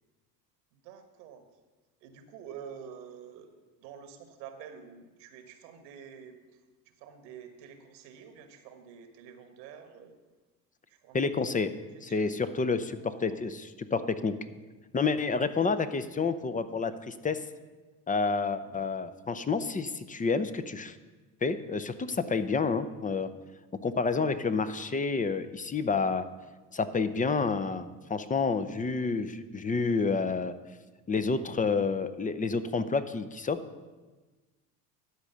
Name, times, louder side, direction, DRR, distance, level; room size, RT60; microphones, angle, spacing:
voice 1, 0.7-1.5 2.0-3.5 3.8-6.6 6.8-10.1 10.9-11.2 11.9-12.3 12.9-13.4 18.6-18.9, right 7 dB, 80° right, 7 dB, 1.4 m, -48 dB
voice 2, 11.1-11.7 12.0-14.3 14.9-17.4 18.1-21.0 21.4-23.3 23.8-26.3 26.7-30.5 31.1-33.6, left 4 dB, 15° left, 12 dB, 0.6 m, -29 dB
12.5 x 5.0 x 6.8 m, 1.2 s
hypercardioid pair, 75°, 48 cm